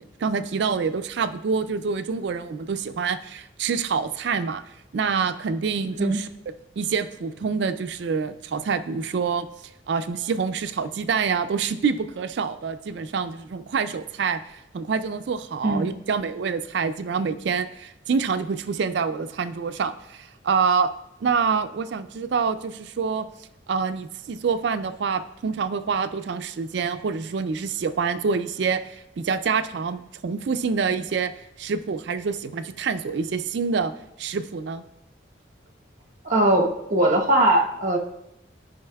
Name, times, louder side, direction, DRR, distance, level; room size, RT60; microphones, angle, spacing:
voice 1, 0.0-4.6 4.9-6.3 6.8-9.5 9.9-20.9 21.2-23.3 23.7-31.3 31.6-33.9 34.2-34.8, right 5 dB, 60° right, 11 dB, 0.4 m, -26 dB
voice 2, 36.2-38.0, right 1 dB, 40° right, 1 dB, 1.0 m, -20 dB
13.0 x 5.3 x 2.3 m, 0.85 s
head